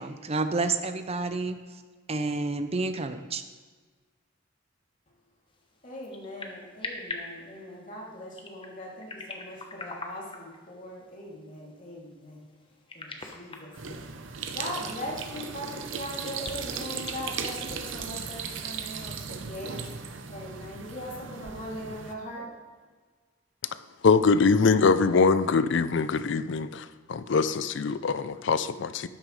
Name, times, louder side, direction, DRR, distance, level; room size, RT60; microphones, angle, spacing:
voice 1, 0.0-1.6 2.1-3.4, right 3 dB, 35° right, 9 dB, 0.7 m, -29 dB
sound 1, 5.5-19.9, left 3 dB, 25° left, 1.0 m, -46 dB
voice 2, 5.8-12.4 12.9-14.1 14.5-19.7 20.3-22.5, left 1 dB, 40° left, -4 dB, 2.7 m, -40 dB
sound 2, 13.8-22.1, right 6 dB, 75° right, 0.7 m, -37 dB
voice 3, 24.0-29.1, left 4 dB, 65° left, 13 dB, 0.5 m, -23 dB
12.5 x 9.9 x 3.2 m, 1.4 s
head